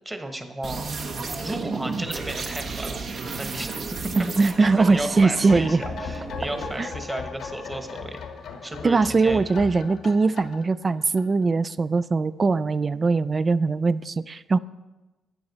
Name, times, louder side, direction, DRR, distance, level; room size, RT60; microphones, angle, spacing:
voice 1, 0.0-0.9 1.4-3.0 3.4-3.7 4.0-4.1 4.4-8.2 8.6-9.0 9.2-9.4, right 1 dB, 15° right, 6 dB, 1.2 m, -34 dB
sound 1, 0.6-6.8, right 4 dB, 50° right, 1.0 m, -33 dB
voice 2, 4.2-5.8 6.8-6.9 8.8-14.6, right 4 dB, 35° right, 17 dB, 0.3 m, -21 dB
sound 2, 4.3-11.7 12.0-12.1, left 5 dB, 70° left, 1.0 m, -37 dB
11.5 x 8.7 x 4.1 m, 1.1 s
cardioid pair, 90°, 0 cm